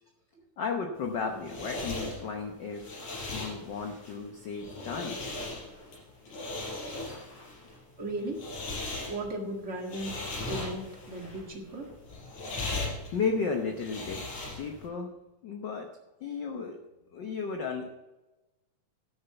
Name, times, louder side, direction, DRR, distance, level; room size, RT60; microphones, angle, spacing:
voice 1, 0.6-3.0 3.3-5.2 7.1-7.5 12.6-15.1 15.4-15.9 16.2-16.8 17.1-17.9, left 5 dB, 70° left, 3 dB, 1.0 m, -34 dB
sound 1, 1.0-14.9, left 2 dB, 90° left, 6.0 m, -38 dB
voice 2, 8.0-8.4 9.1-10.2 10.5-11.9, right 1 dB, 30° right, 1 dB, 1.7 m, -36 dB
12.0 x 6.7 x 7.0 m, 1.0 s
omnidirectional pair, 3.4 m